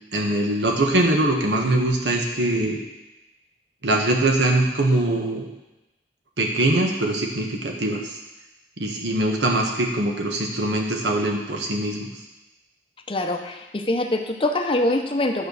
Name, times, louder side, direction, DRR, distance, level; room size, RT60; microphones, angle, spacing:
voice 1, 0.1-2.8 3.8-5.5 6.4-8.2 8.8-12.1, right 1 dB, 90° right, 1 dB, 1.4 m, -22 dB
voice 2, 13.1-15.5, left 1 dB, 30° left, 5 dB, 0.7 m, -24 dB
9.9 x 4.5 x 6.7 m, 1.0 s
head